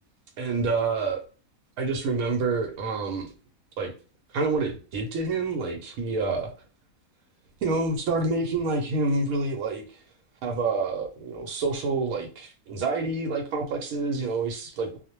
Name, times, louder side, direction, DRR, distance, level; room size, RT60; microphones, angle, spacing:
voice 1, 0.4-1.2 1.8-3.3 3.8-3.9 4.3-6.5 7.6-9.8 10.4-15.0, right 3 dB, 90° right, 1.1 m, -27 dB
2.4 x 2.1 x 2.9 m
omnidirectional pair, 1.5 m